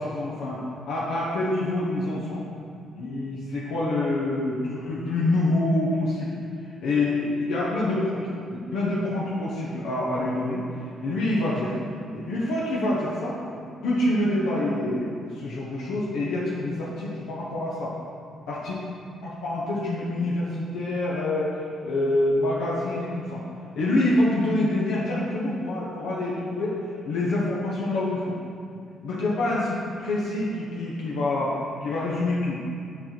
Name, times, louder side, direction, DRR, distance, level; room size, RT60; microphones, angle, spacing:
voice 1, 0.0-2.4 2.9-6.4 6.8-10.6 11.0-11.7 12.1-13.4 13.8-17.9 18.5-18.7 19.2-23.4 23.7-26.8 27.0-28.4 29.0-32.6, left 2 dB, 85° left, -6 dB, 1.1 m, -26 dB
7.7 x 4.3 x 4.5 m, 2.4 s
cardioid pair, 90°, 0 cm